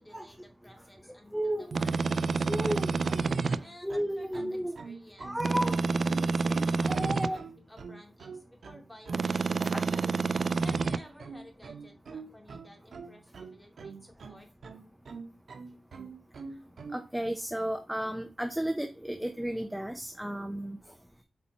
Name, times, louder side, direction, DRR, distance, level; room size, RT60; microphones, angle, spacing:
voice 1, 0.0-2.8 3.6-9.4 10.6-14.5, equal, 10° left, 1 dB, 2.3 m, -54 dB
voice 2, 1.1-1.8 2.4-2.9 3.2-3.4 3.8-4.7 5.2-5.8 6.9-7.4 9.6-9.9 10.5-10.6 16.9-20.8, right 1 dB, 5° right, 5 dB, 0.7 m, -33 dB
sound 1, 1.7-3.6 5.4-7.3 9.1-11.0, right 4 dB, 60° right, 0.3 m, -28 dB
sound 2, 2.7-17.0, right 5 dB, 90° right, 1.1 m, -45 dB
8.5 x 4.2 x 2.9 m, 0.29 s
wide cardioid pair, 140°, 0 cm